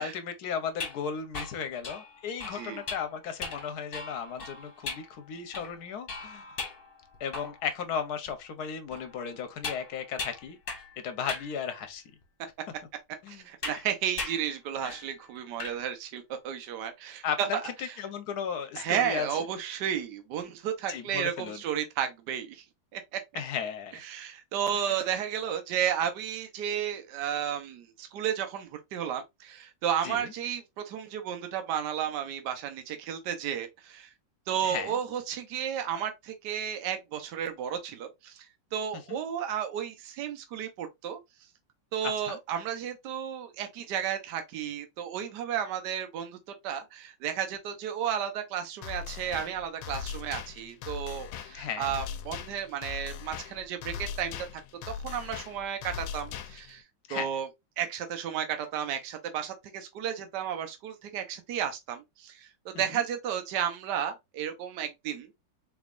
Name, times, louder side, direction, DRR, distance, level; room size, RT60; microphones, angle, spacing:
voice 1, 0.0-6.6 7.2-10.6 11.0-12.0 13.2-13.5 17.2-19.3 20.9-21.6 23.3-24.0 24.9-25.0 30.0-30.3 34.6-35.0 39.1-39.2 42.0-42.4 51.5-51.9 57.1-57.3 62.7-63.0, left 7 dB, 65° left, 1.1 m, -35 dB
sound 1, 0.8-7.8 8.3-8.4 8.9-11.0 11.3-11.5 12.2-12.3 13.6-13.9 14.2-14.5 14.8-15.1 15.4-15.8, left 4 dB, 35° left, 1.0 m, -39 dB
voice 2, 13.3-17.9 18.8-22.6 22.9-23.2 24.0-34.1 34.5-38.5 38.7-41.2 41.9-46.4 46.6-54.4 54.9-56.8 57.1-57.5 57.8-65.3, right 9 dB, 70° right, 1.4 m, -33 dB
sound 2, 48.8-56.8, left 8 dB, 85° left, 1.3 m, -40 dB
4.0 x 3.5 x 2.4 m
omnidirectional pair, 2.0 m